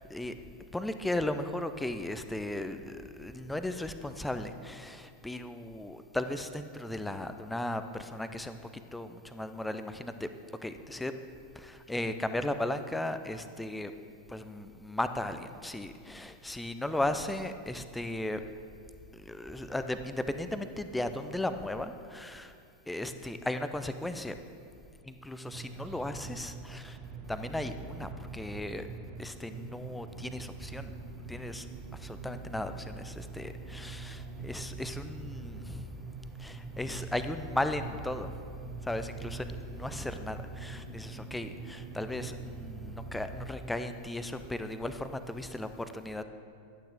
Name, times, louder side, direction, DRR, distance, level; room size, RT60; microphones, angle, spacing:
voice 1, 0.7-10.3 10.6-11.1 11.6-13.9 14.3-18.4 19.1-22.5 22.9-24.3 25.1-27.0 27.3-28.9 29.2-31.0 31.3-31.7 31.9-35.9 36.4-38.3 38.8-46.2, left 1 dB, 5° left, 9 dB, 0.5 m, -36 dB
sound 1, 25.5-43.5, right 3 dB, 30° right, 0.9 m, -43 dB
11.5 x 9.1 x 3.7 m, 2.3 s
figure-of-eight pair, 90°, 0 cm